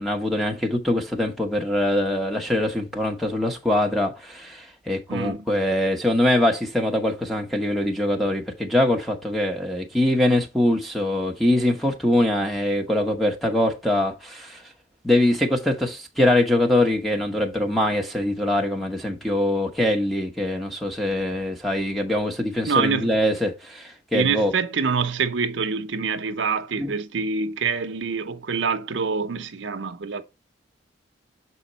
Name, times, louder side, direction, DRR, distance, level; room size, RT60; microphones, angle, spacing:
voice 1, 0.0-14.6 15.0-24.5 26.8-26.9, left 1 dB, ahead, 0.9 m, -23 dB
voice 2, 5.1-5.5 22.7-23.1 24.1-30.2, right 5 dB, 70° right, 0.6 m, -25 dB
7.0 x 4.3 x 4.0 m
head